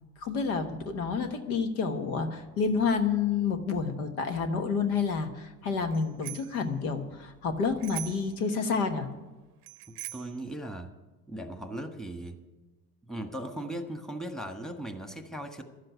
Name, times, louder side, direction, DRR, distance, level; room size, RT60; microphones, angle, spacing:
voice 1, 0.2-9.1, left 5 dB, 80° left, 7 dB, 1.3 m, -29 dB
Bicycle bell, 5.9-6.6 7.8-8.4 9.6-10.4, right 17 dB, 90° right, 0.6 m, -41 dB
voice 2, 9.9-10.9 11.3-12.4 13.1-15.6, right 1 dB, ahead, 5 dB, 1.5 m, -38 dB
12.0 x 7.7 x 9.4 m, 1.2 s
hypercardioid pair, 65°, 44 cm